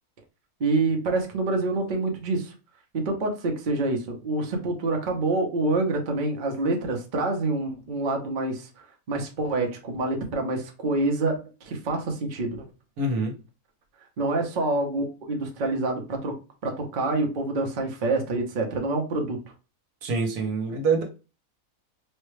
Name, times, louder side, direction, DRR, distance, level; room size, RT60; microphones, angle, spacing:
voice 1, 0.6-2.5 2.9-8.7 9.1-12.7 14.2-16.4 16.6-19.4, right 2 dB, 40° right, 0.8 m, -27 dB
voice 2, 13.0-13.3 20.0-21.0, right 3 dB, 75° right, 1.4 m, -25 dB
4.3 x 2.2 x 3.2 m
omnidirectional pair, 1.6 m